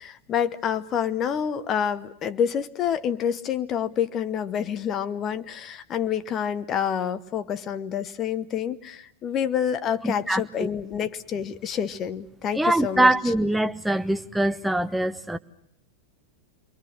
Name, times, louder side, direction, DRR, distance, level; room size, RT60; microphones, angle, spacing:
voice 1, 0.0-13.1, left 8 dB, 30° left, 1.0 m, -28 dB
voice 2, 10.0-10.7 12.5-15.4, right 1 dB, 5° right, 1.0 m, -23 dB
30.0 x 22.5 x 6.5 m
figure-of-eight pair, 90°, 0 cm